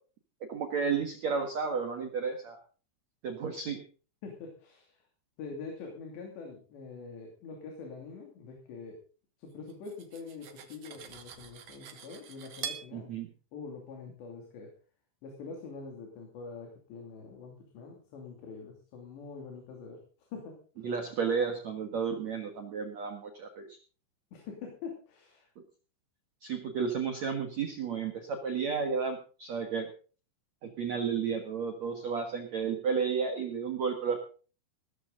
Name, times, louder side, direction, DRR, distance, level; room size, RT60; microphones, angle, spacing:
voice 1, 0.5-2.6 3.2-3.8 12.9-13.3 20.8-23.7 26.4-29.9 30.6-34.2, right 6 dB, 60° right, 4 dB, 1.9 m, -32 dB
voice 2, 4.2-5.0 5.4-9.0 9.4-13.1 13.5-14.7 15.2-20.0 20.3-20.9 24.3-25.5, left 4 dB, 70° left, 1 dB, 4.9 m, -45 dB
Cutlery silverware, 9.7-12.9, right 8 dB, 80° right, 1.4 m, -44 dB
18.0 x 13.5 x 3.9 m, 0.38 s
omnidirectional pair, 5.4 m